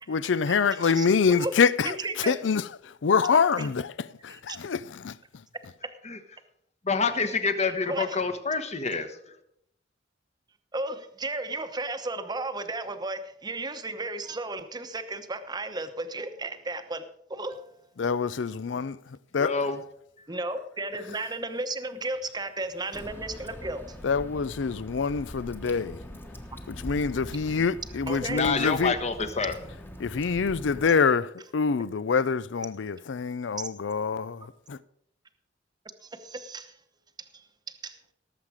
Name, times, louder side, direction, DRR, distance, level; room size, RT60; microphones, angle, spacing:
voice 1, 0.1-2.0 2.3-5.2 18.0-19.5 24.0-26.0 26.7-29.0 30.0-34.8, left 5 dB, 75° left, 0.5 m, -26 dB
voice 2, 0.8-1.5 1.8-2.4 3.6-3.7 4.3-4.6 7.9-8.3 10.7-17.0 17.3-17.8 20.3-24.0 28.1-28.4 36.0-36.8 37.2-38.0, right 2 dB, 20° right, 0.9 m, -34 dB
voice 3, 6.9-9.1 19.4-19.8 28.3-29.5, left 4 dB, 35° left, 1.2 m, -27 dB
Water / Drip, 22.9-30.9, equal, 10° left, 1.2 m, -42 dB
18.0 x 7.5 x 4.9 m
head